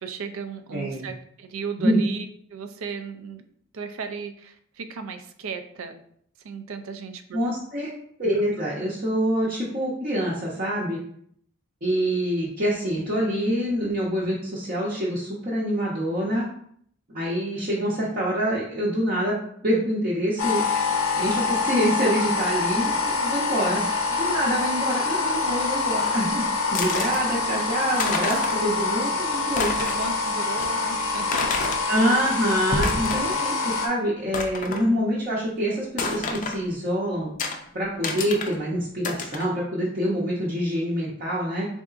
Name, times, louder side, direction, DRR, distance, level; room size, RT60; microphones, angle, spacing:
voice 1, 0.0-3.4 3.7-6.0 6.4-7.4 28.2-28.6 29.8-31.5 32.1-32.3 33.2-33.4 34.7-34.8, right 5 dB, 75° right, 7 dB, 0.4 m, -36 dB
voice 2, 0.7-1.1 1.8-2.0 7.3-7.9 8.2-11.0 11.8-16.4 17.1-19.4 19.6-20.7 21.1-26.4 26.7-29.7 31.9-37.3 37.7-41.7, equal, 45° right, -7 dB, 0.7 m, -26 dB
sound 1, 20.4-33.9, left 4 dB, 80° left, 0.6 m, -25 dB
sound 2, 26.7-27.2 27.7-27.8 28.0-28.7 29.0-29.1 29.5-30.1 30.6-30.7 31.3-31.8 32.6-33.5 33.8-33.9 34.3-34.9 36.0-36.6 37.4-37.6 38.0-38.6 39.0-39.5, left 3 dB, 40° left, 0.4 m, -29 dB
3.8 x 3.5 x 2.4 m, 0.65 s
head